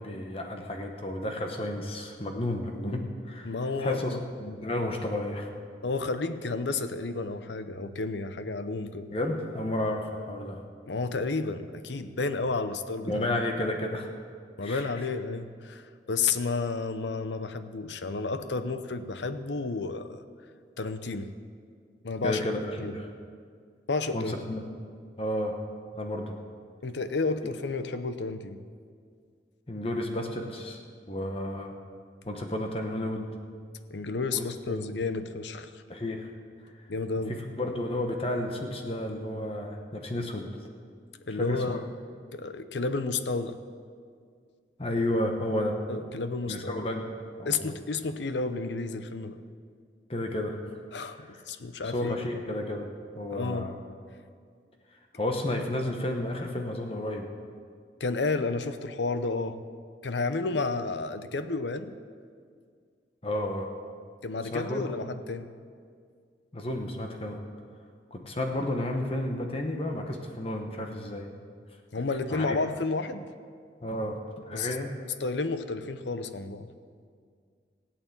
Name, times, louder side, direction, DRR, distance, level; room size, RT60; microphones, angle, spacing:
voice 1, 0.0-5.5 9.1-10.6 13.1-14.1 14.6-14.9 22.2-23.1 24.1-24.6 25.2-25.6 25.9-26.4 29.7-30.8 31.1-31.8 32.3-33.3 34.3-34.9 35.9-36.3 37.3-40.5 41.3-41.8 44.8-45.8 46.5-47.1 47.4-47.7 50.1-50.6 51.2-51.4 51.8-52.9 53.2-53.8 55.1-57.3 63.2-63.7 64.5-65.0 66.5-67.4 68.1-71.3 72.3-72.6 73.8-74.9, left 1 dB, 30° left, 3 dB, 1.0 m, -32 dB
voice 2, 3.4-4.2 5.8-9.1 10.9-13.3 14.6-20.2 20.8-21.3 22.0-22.4 22.8-22.9 23.9-24.3 26.8-28.6 33.9-35.8 36.9-37.4 41.3-41.9 42.3-43.6 45.9-46.8 47.4-49.4 50.9-52.1 53.3-53.7 58.0-59.6 60.0-61.9 64.2-65.5 71.9-73.3 74.5-74.8 75.2-76.7, left 3 dB, 80° left, 10 dB, 0.8 m, -31 dB
17.0 x 8.7 x 7.3 m, 2.1 s
head